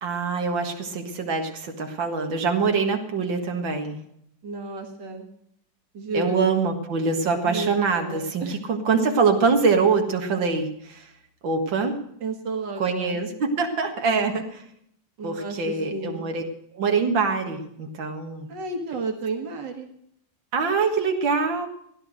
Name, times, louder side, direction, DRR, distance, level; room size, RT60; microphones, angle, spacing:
voice 1, 0.0-4.0 6.1-11.1 11.4-12.0 12.8-14.6 15.2-16.4 16.7-18.5 20.5-21.7, right 4 dB, 85° right, 4 dB, 2.4 m, -24 dB
voice 2, 4.4-5.3 5.9-6.4 7.4-8.6 12.2-13.2 15.2-16.3 18.5-19.9, right 3 dB, 70° right, 3 dB, 2.6 m, -32 dB
16.0 x 11.0 x 6.4 m, 0.71 s
omnidirectional pair, 2.0 m